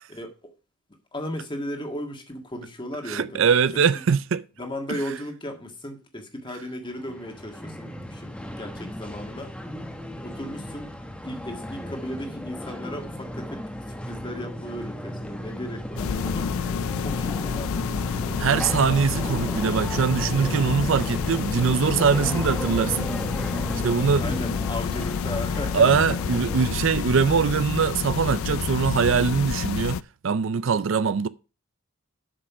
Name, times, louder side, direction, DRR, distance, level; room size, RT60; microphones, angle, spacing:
voice 1, 0.1-0.5 1.1-3.4 3.7-4.0 4.6-9.5 10.2-10.9 11.2-16.6 16.9-17.9 24.2-25.9, left 1 dB, 20° left, 1.7 m, -36 dB
voice 2, 3.1-4.4 4.9-5.0 18.4-23.1 23.8-24.2 25.7-31.3, right 6 dB, 60° right, 0.4 m, -22 dB
sound 1, 6.8-26.7, equal, 5° left, 1.0 m, -35 dB
sound 2, 16.0-30.0, left 6 dB, 70° left, 0.4 m, -29 dB
7.8 x 6.5 x 5.8 m
head